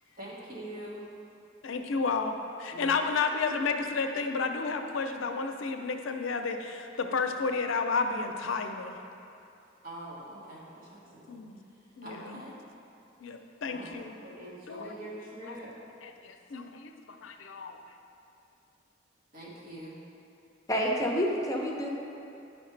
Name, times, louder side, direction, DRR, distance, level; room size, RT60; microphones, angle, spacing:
voice 1, 0.2-1.1 2.7-3.0 9.8-11.4 11.7-12.5 13.7-15.7 19.3-20.0, right 1 dB, 50° right, -6 dB, 1.6 m, -44 dB
voice 2, 1.6-9.0 11.3-11.6 12.0-12.2 13.2-14.2 14.7-15.0 15.4-15.5 16.0-16.9 17.2-17.8, left 4 dB, 85° left, 5 dB, 0.5 m, -31 dB
voice 3, 20.7-21.9, equal, 15° left, -2 dB, 0.7 m, -28 dB
9.3 x 5.2 x 3.3 m, 2.6 s
head